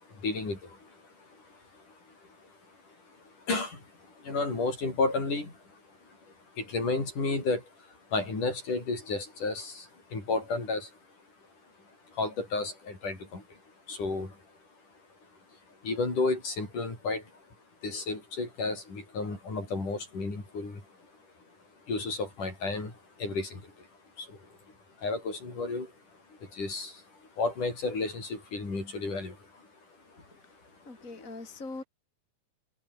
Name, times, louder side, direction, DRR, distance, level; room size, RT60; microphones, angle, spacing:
voice 1, 0.0-11.0 12.0-13.6 13.9-14.5 15.5-17.5 17.8-21.2 21.8-23.9 24.2-29.7 30.1-30.2 30.5-30.6 31.1-31.5, left 3 dB, 70° left, 9.6 m, -33 dB
voice 2, 30.9-31.8, left 3 dB, 20° left, 5.3 m, -41 dB
omnidirectional pair, 3.8 m